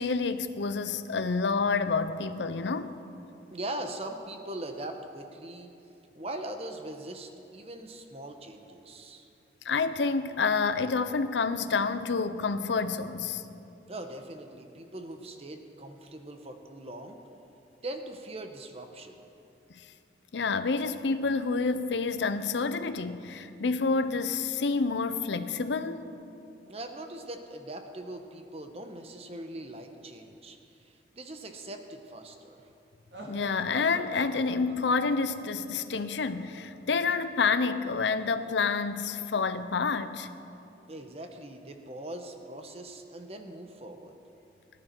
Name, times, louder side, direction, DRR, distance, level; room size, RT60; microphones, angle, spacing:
voice 1, 0.0-3.0 9.6-13.4 20.3-26.0 33.3-40.3, left 4 dB, 90° left, 0.6 m, -28 dB
voice 2, 3.5-5.7 6.1-9.3 13.9-17.2 17.8-19.3 26.7-32.7 40.9-44.2, right 1 dB, 35° right, 0.9 m, -41 dB
sound 1, 33.1-36.8, right 1 dB, 80° right, 2.1 m, -45 dB
18.0 x 11.0 x 4.5 m
head